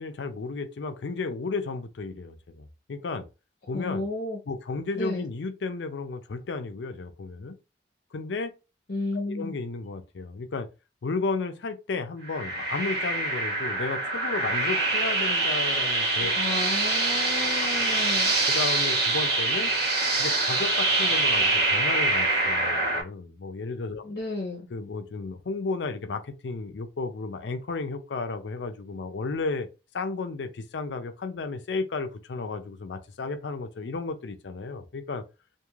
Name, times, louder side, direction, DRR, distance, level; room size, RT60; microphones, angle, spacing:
voice 1, 0.0-3.2 3.7-4.0 4.5-7.6 8.1-8.5 9.1-10.7 11.0-16.3 17.4-17.7 18.2-19.7 20.2-24.0 24.7-29.7 29.9-35.2, left 3 dB, 85° left, 0.5 m, -33 dB
voice 2, 3.7-4.4 5.0-5.3 8.9-9.5 16.4-18.3 24.0-24.7, left 2 dB, 60° left, 0.8 m, -32 dB
sound 1, 12.2-23.0, right 2 dB, 60° right, 1.3 m, -25 dB
2.5 x 2.4 x 3.0 m
head